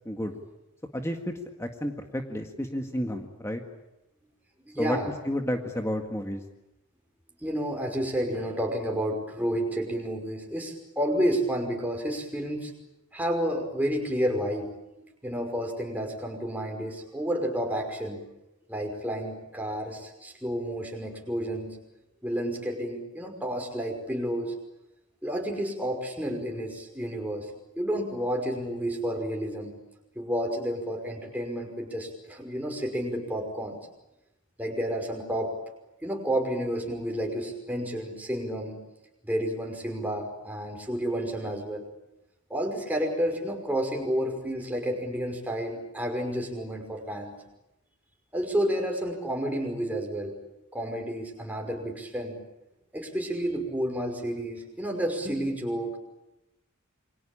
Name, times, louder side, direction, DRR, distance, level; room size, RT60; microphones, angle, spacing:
voice 1, 0.9-1.3 1.6-3.6 4.8-6.4, equal, 15° left, 4 dB, 1.8 m, -31 dB
voice 2, 4.7-5.1 7.4-12.7 13.1-14.7 14.9-18.2 18.7-21.8 22.2-24.5 25.2-27.5 27.8-29.7 30.2-33.8 34.6-35.5 36.0-38.8 39.2-41.8 42.5-47.3 48.3-50.3 50.7-52.4 52.9-56.0, equal, 10° right, 2 dB, 5.5 m, -30 dB
28.5 x 24.0 x 8.7 m, 0.93 s
head